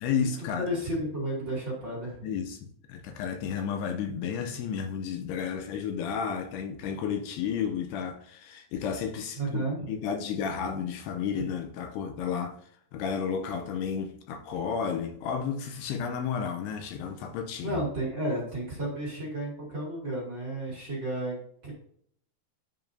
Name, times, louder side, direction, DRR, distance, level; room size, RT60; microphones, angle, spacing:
voice 1, 0.0-0.7 2.2-12.6 12.9-17.8, left 7 dB, 80° left, 2.6 m, -32 dB
voice 2, 0.5-2.2 9.3-9.9 17.6-21.4 21.6-21.7, right 1 dB, 35° right, 2.4 m, -32 dB
10.5 x 5.6 x 2.7 m
omnidirectional pair, 4.9 m